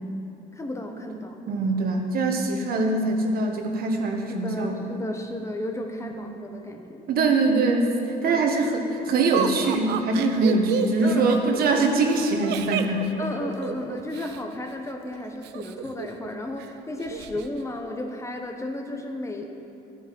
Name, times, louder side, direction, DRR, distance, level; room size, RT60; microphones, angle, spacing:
voice 1, 0.5-1.4 4.3-7.1 8.2-8.4 10.5-10.6 11.0-11.8 12.1-12.2 13.2-19.5, left 1 dB, 15° left, 3 dB, 1.1 m, -34 dB
voice 2, 1.5-4.9 6.0-6.2 7.1-7.9 8.2-13.1, right 3 dB, 60° right, 2 dB, 1.5 m, -23 dB
Laughter, 9.3-14.4 15.4-16.3 16.6-16.7 17.0-17.5, right 9 dB, 80° right, 0.7 m, -30 dB
13.0 x 8.9 x 5.4 m, 2.7 s
cardioid pair, 110°, 17 cm